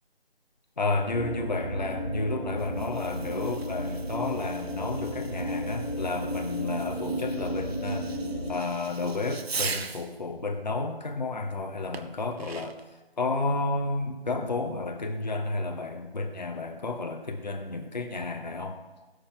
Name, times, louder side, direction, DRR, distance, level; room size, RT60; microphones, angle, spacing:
voice 1, 0.8-8.2 8.5-12.8 13.2-18.8, left 3 dB, 45° left, 5 dB, 1.0 m, -31 dB
sound 1, 1.1-8.5, equal, 15° right, 1.3 m, -33 dB
Fireworks, 2.5-10.2 11.9-12.9, right 5 dB, 80° right, 0.8 m, -41 dB
16.5 x 6.5 x 4.4 m, 1.1 s
figure-of-eight pair, 175°, 31 cm